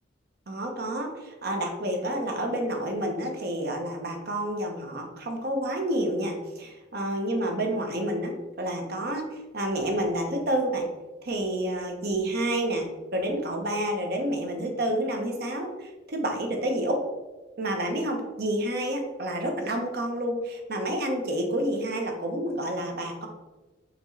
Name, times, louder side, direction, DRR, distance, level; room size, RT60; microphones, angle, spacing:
voice 1, 0.5-10.8 11.2-17.0 17.6-23.3, right 1 dB, 55° right, 3 dB, 0.8 m, -29 dB
4.4 x 3.0 x 3.9 m, 1.1 s
head